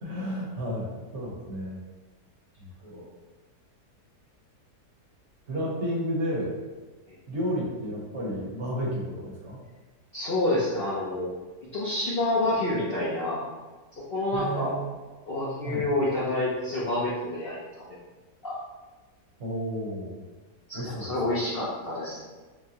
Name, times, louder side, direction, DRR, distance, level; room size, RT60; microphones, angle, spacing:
voice 1, 0.0-1.8 2.6-3.0 5.5-6.5 7.3-9.6 14.3-15.0 15.6-15.9 19.4-20.3 20.7-21.4, equal, 50° right, -5 dB, 1.3 m, -32 dB
voice 2, 10.1-11.3 11.7-13.4 14.1-14.8 15.3-17.8 18.4-18.5 20.7-22.3, left 1 dB, 50° left, -8 dB, 0.7 m, -28 dB
6.4 x 2.2 x 2.8 m, 1.3 s
omnidirectional pair, 1.7 m